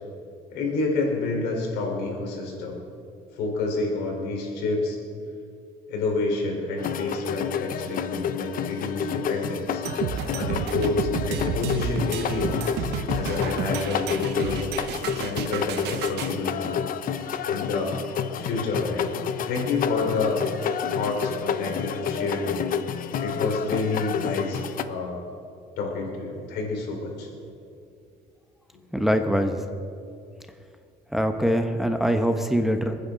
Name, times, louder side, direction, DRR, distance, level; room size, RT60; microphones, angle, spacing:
voice 1, 0.5-2.8 3.4-5.0 5.9-9.8 10.3-12.6 13.1-14.6 15.1-16.8 17.5-18.0 18.4-19.1 19.4-20.4 20.9-22.7 23.2-25.2 25.8-27.3, left 3 dB, 80° left, 0 dB, 4.1 m, -28 dB
sound 1, 6.8-24.8, left 8 dB, 55° left, 0.8 m, -30 dB
sound 2, 9.8-16.3, right 8 dB, 85° right, 1.0 m, -31 dB
voice 2, 28.9-29.6 31.1-33.0, equal, ahead, 6 dB, 1.0 m, -23 dB
29.0 x 9.7 x 3.9 m, 2.4 s
cardioid pair, 110°, 17 cm